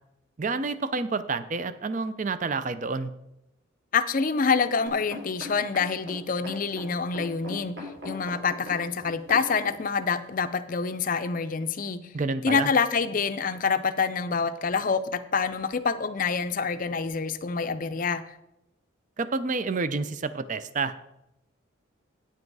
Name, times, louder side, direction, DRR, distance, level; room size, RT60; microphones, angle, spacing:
voice 1, 0.4-3.1 12.1-12.7 19.2-21.0, right 4 dB, 35° right, 13 dB, 0.4 m, -29 dB
voice 2, 3.9-7.8 8.0-12.1 12.4-18.2, left 5 dB, 40° left, 11 dB, 0.5 m, -26 dB
sound 1, 4.9-9.7 10.4-10.5, left 2 dB, 60° right, 3.6 m, -40 dB
9.4 x 7.6 x 4.7 m, 0.86 s
head